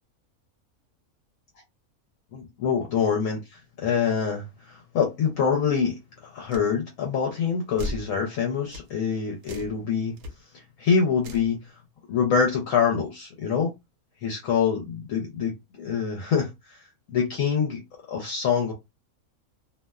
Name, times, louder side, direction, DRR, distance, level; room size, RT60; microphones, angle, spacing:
voice 1, 2.3-10.1 10.8-11.6 12.1-13.7 14.2-16.8 17.1-17.8 18.1-18.7, left 6 dB, 70° left, 1.0 m, -25 dB
sound 1, 6.5-6.7 7.8-8.1 8.7-8.9 9.4-9.8 10.2-10.3 11.2-11.5, left 1 dB, 80° right, 1.1 m, -35 dB
2.7 x 2.0 x 2.2 m
omnidirectional pair, 1.5 m